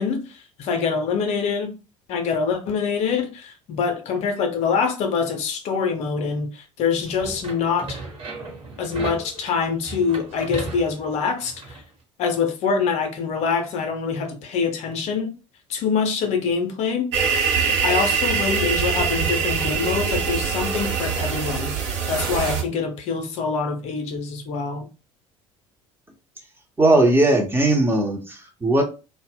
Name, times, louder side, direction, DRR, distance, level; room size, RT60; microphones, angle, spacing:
voice 1, 0.0-1.7 2.1-8.0 8.8-11.8 12.2-15.3 15.7-17.1 17.8-24.9, left 5 dB, 45° left, 0.6 m, -25 dB
sound 1, 7.0-11.8, right 2 dB, 35° right, 1.0 m, -36 dB
sound 2, 17.1-22.6, right 6 dB, 65° right, 0.6 m, -23 dB
voice 2, 26.8-28.8, right 2 dB, 15° right, 0.6 m, -18 dB
2.0 x 2.0 x 3.4 m
figure-of-eight pair, 60°, 16 cm